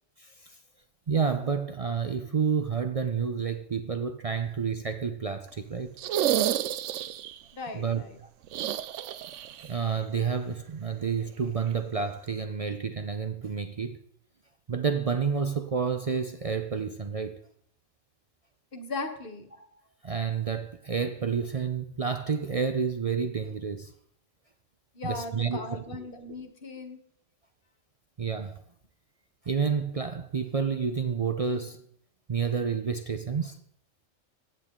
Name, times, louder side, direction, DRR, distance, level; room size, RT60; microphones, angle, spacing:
voice 1, 0.2-0.6 1.1-6.0 7.7-8.0 9.6-14.0 14.7-17.4 20.0-23.9 25.0-25.8 28.2-28.6 29.5-31.8 32.3-33.6, right 6 dB, 55° right, 0.4 m, -29 dB
sound 1, 6.0-7.4 8.5-9.7 9.9-10.0 11.7-11.8, right 11 dB, 70° right, 0.9 m, -29 dB
voice 2, 7.5-8.2 18.7-19.5 24.9-27.0, left 3 dB, 45° left, 1.4 m, -38 dB
15.0 x 8.7 x 3.7 m
omnidirectional pair, 1.4 m